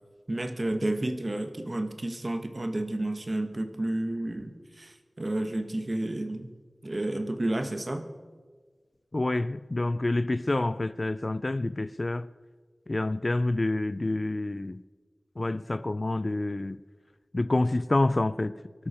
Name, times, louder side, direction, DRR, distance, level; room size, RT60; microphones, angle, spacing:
voice 1, 0.3-6.5 6.8-8.1, right 1 dB, 35° right, 7 dB, 1.3 m, -31 dB
voice 2, 9.1-12.3 12.9-14.8 15.4-16.8 17.3-18.9, left 2 dB, 40° left, 16 dB, 0.4 m, -28 dB
23.5 x 12.0 x 4.3 m, 1.5 s
wide cardioid pair, 75°, 0 cm